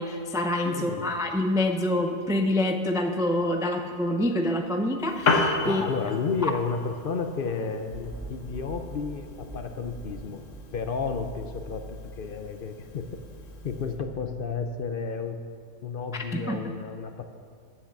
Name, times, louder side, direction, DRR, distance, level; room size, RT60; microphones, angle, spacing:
voice 1, 0.0-5.8 6.4-6.5 16.1-16.6, left 1 dB, 5° right, 4 dB, 0.3 m, -26 dB
voice 2, 0.7-1.1 5.6-10.4 10.7-13.2 13.6-15.4 15.8-17.2, left 5 dB, 55° left, 7 dB, 0.8 m, -32 dB
Piano, 5.0-14.0, left 3 dB, 85° left, 1.4 m, -34 dB
sound 1, 7.9-14.7, right 1 dB, 80° right, 3.0 m, -44 dB
9.7 x 7.7 x 7.2 m, 2.2 s
omnidirectional pair, 1.2 m